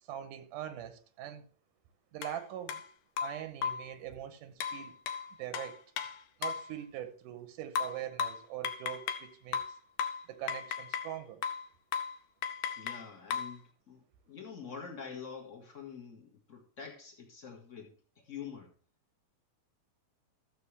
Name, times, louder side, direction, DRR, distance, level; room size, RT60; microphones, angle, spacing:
voice 1, 0.0-1.5 2.1-2.9 3.2-5.0 5.4-5.8 6.4-9.6 10.3-11.4, right 11 dB, 85° right, 2.4 m, -42 dB
sound 1, 2.2-2.3 2.7-2.8 3.2-3.9 4.6-6.7 7.8-9.3 9.5-11.1 11.4-11.7 11.9-12.2 12.4-13.6, left 7 dB, 75° left, 2.0 m, -36 dB
voice 2, 12.8-18.7, left 6 dB, 35° left, 1.4 m, -46 dB
14.0 x 7.0 x 3.3 m
omnidirectional pair, 3.6 m